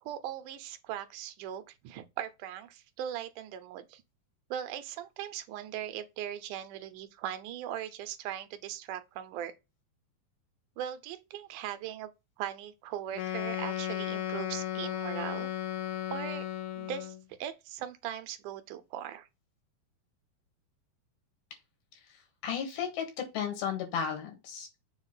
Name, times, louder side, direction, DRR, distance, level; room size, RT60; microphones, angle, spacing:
voice 1, 0.0-4.0 4.5-9.5 10.8-12.1 12.4-15.5 16.1-16.4 16.8-19.3, right 11 dB, 75° right, 2.0 m, -39 dB
Wind instrument woodwind instrument, 13.1-17.2, left 12 dB, 70° left, 2.0 m, -35 dB
voice 2, 21.9-24.8, left 7 dB, 90° left, 3.5 m, -35 dB
7.2 x 2.4 x 5.5 m
omnidirectional pair, 4.2 m